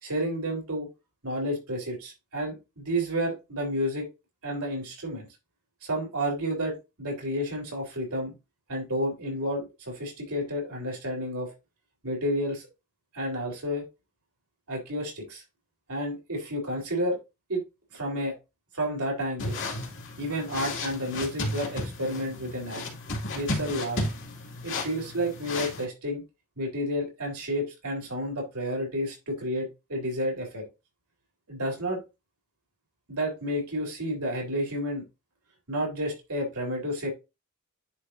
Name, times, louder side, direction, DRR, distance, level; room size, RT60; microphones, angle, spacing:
voice 1, 0.0-0.9 1.2-4.1 4.4-5.3 5.8-8.3 8.7-11.5 12.0-12.6 13.1-13.9 14.7-15.4 15.9-17.2 17.5-17.6 17.9-18.3 18.7-19.6 20.2-22.8 23.3-24.1 24.6-26.2 26.6-30.6 31.5-32.0 33.1-35.0 35.7-37.1, equal, 75° right, -1 dB, 3.8 m, -31 dB
sound 1, 19.4-25.8, left 2 dB, 60° left, 2.4 m, -34 dB
10.0 x 4.5 x 2.7 m, 0.25 s
head